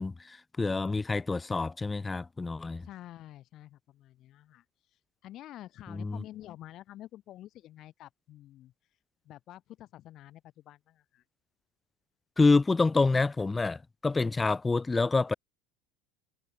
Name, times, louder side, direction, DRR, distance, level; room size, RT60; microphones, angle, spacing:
voice 1, 0.0-2.9 5.9-6.2 12.4-15.3, left 3 dB, 15° left, 0.3 m, -27 dB
voice 2, 2.8-8.7 9.2-11.2, left 13 dB, 45° left, 2.3 m, -49 dB
supercardioid pair, 130°, 0 cm